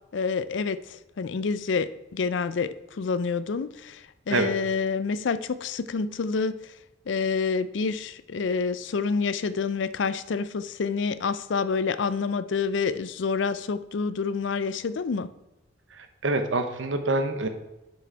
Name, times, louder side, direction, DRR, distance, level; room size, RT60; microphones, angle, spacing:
voice 1, 0.1-6.7 7.1-15.3, left 5 dB, 70° left, 14 dB, 0.4 m, -28 dB
voice 2, 15.9-17.5, right 2 dB, 80° right, 8 dB, 1.0 m, -26 dB
7.2 x 6.3 x 4.6 m, 0.98 s
head